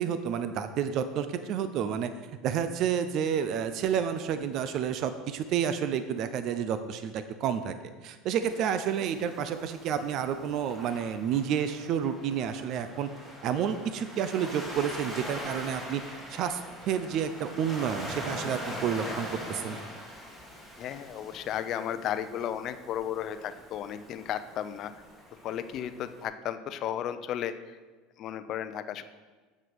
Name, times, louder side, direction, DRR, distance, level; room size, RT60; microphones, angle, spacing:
voice 1, 0.0-2.1 2.4-7.7 8.0-13.1 13.4-16.0 16.3-19.8, right 8 dB, 50° right, 10 dB, 0.6 m, -30 dB
Waves surf, 8.4-26.2, equal, 15° right, 2.3 m, -42 dB
voice 2, 20.8-24.9 25.4-27.8 28.2-29.0, left 10 dB, 45° left, 11 dB, 0.6 m, -34 dB
8.0 x 7.5 x 6.2 m, 1.4 s
supercardioid pair, 135°, 0 cm